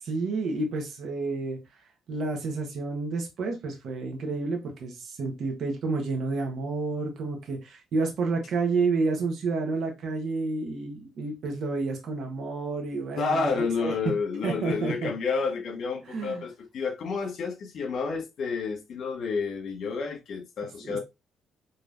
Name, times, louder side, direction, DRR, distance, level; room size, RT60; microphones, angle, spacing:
voice 1, 0.0-1.8 2.1-13.5 13.8-14.1 14.4-15.1 16.1-16.5 20.8-21.0, right 3 dB, 70° right, 1.4 m, -30 dB
voice 2, 13.2-21.0, left 4 dB, 65° left, 1.8 m, -30 dB
5.4 x 3.2 x 2.7 m
cardioid pair, 90°, 0 cm